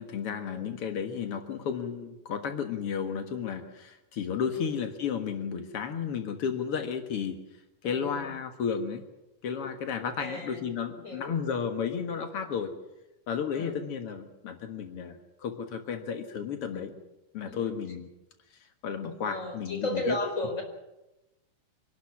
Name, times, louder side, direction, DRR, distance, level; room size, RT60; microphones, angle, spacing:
voice 1, 0.0-7.4 7.8-9.0 9.4-12.7 13.3-16.9 17.3-18.1 18.8-20.2, left 7 dB, 85° left, 7 dB, 1.2 m, -33 dB
voice 2, 7.8-8.3 10.2-10.6 11.0-11.4 13.5-13.8 16.7-16.9 17.4-17.7 19.3-20.6, left 2 dB, 15° left, 4 dB, 4.5 m, -35 dB
26.5 x 12.0 x 9.7 m, 0.95 s
omnidirectional pair, 5.1 m